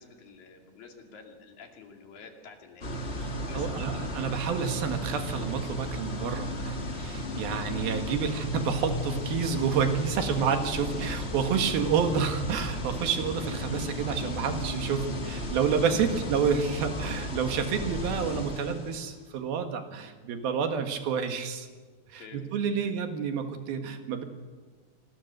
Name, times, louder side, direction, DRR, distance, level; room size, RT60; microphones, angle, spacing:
voice 1, 0.0-3.0 3.5-3.8 7.5-7.6 16.0-16.2 22.2-22.5 22.8-23.0, left 5 dB, 70° left, 3 dB, 4.2 m, -49 dB
sound 1, 2.8-19.2, left 1 dB, 30° left, 1.3 m, -34 dB
voice 2, 3.3-21.7 22.1-24.2, right 6 dB, 80° right, 6 dB, 3.5 m, -29 dB
27.0 x 20.5 x 6.8 m, 1.4 s
omnidirectional pair, 4.3 m